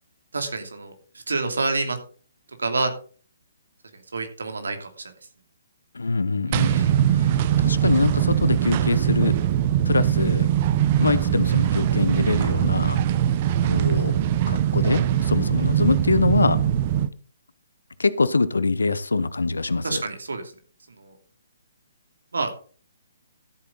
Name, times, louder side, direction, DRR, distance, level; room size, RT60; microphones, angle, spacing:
voice 1, 0.3-0.9 1.3-2.0 2.6-2.9 4.1-5.1 6.5-6.9 19.8-20.5 21.0-21.1 22.3-22.5, right 3 dB, 75° right, 6 dB, 2.8 m, -28 dB
voice 2, 5.9-9.3 9.8-10.5 11.0-13.0 13.6-14.1 14.5-16.6 18.0-20.0, left 3 dB, 75° left, 15 dB, 1.0 m, -24 dB
sound 1, 6.5-17.1, right 10 dB, 35° right, 0.8 m, -21 dB
13.5 x 8.3 x 4.0 m, 0.40 s
figure-of-eight pair, 135°, 0 cm